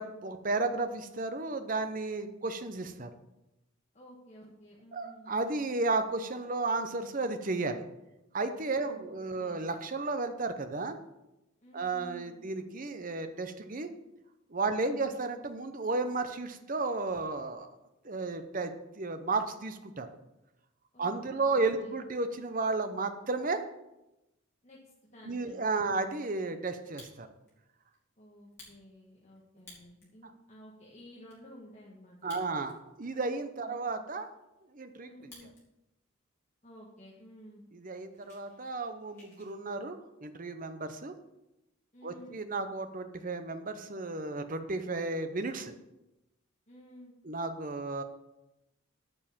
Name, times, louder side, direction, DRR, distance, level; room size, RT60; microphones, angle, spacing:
voice 1, 0.0-3.1 4.9-7.8 8.3-11.0 11.7-13.9 14.5-17.7 18.0-20.1 21.0-23.6 25.2-27.3 32.2-34.3 34.7-35.1 37.7-41.1 42.0-45.7 47.2-48.0, right 3 dB, 40° right, 9 dB, 0.7 m, -33 dB
voice 2, 3.9-5.4 8.8-9.7 11.6-12.4 14.7-15.1 20.9-22.0 24.6-25.8 28.2-32.4 33.7-34.0 35.0-35.5 36.6-37.6 41.9-42.4 46.7-47.1, equal, 30° left, -4 dB, 1.6 m, -53 dB
Fire, 26.7-27.5 27.9-28.0 28.4-30.2 30.7-30.8 30.9-31.4 32.1-32.9 33.3-33.4 33.9-35.6 36.0-36.4 37.0-37.1 37.3-37.5 37.8-39.5, left 2 dB, 10° left, 3.3 m, -56 dB
9.4 x 5.5 x 7.2 m, 0.94 s
head